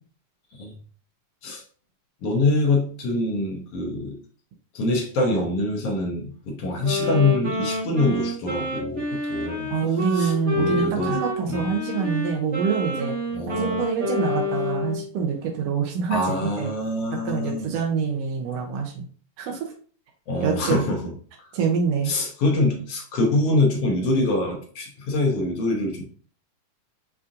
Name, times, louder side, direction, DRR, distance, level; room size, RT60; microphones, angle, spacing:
voice 1, 2.2-4.2 4.7-9.7 10.1-11.2 11.5-11.6 13.3-13.8 16.1-17.7 20.3-21.1 21.4-21.5 22.0-26.0, left 2 dB, 70° left, 0 dB, 1.4 m, -24 dB
Wind instrument woodwind instrument, 6.8-15.0, left 1 dB, 55° right, 0.7 m, -28 dB
voice 2, 9.7-13.2 13.5-16.7 17.2-19.1 19.4-19.7 20.4-20.9 21.5-22.1, right 6 dB, 80° right, 1 dB, 1.5 m, -25 dB
7.0 x 2.4 x 2.5 m, 0.43 s
omnidirectional pair, 3.6 m